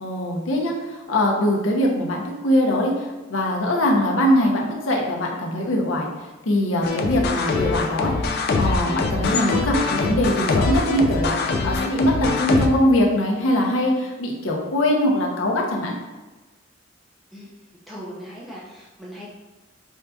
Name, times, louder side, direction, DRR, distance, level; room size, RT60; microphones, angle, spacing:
voice 1, 0.0-6.1 6.4-15.9, left 1 dB, 90° left, -1 dB, 0.7 m, -22 dB
sound 1, 6.8-12.7, left 3 dB, 55° left, 0.3 m, -23 dB
voice 2, 17.3-19.3, equal, ahead, -7 dB, 0.5 m, -39 dB
4.5 x 2.6 x 2.3 m, 1.2 s
head